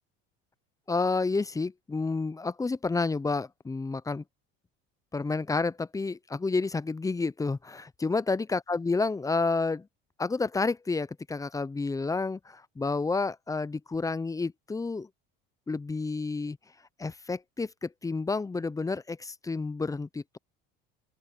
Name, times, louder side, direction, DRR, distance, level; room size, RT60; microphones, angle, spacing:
voice 1, 0.9-4.2 5.1-9.9 10.2-15.1 15.7-16.6 17.0-20.4, left 3 dB, 10° left, 0.6 m, -30 dB
open air
supercardioid pair, 95°, 29 cm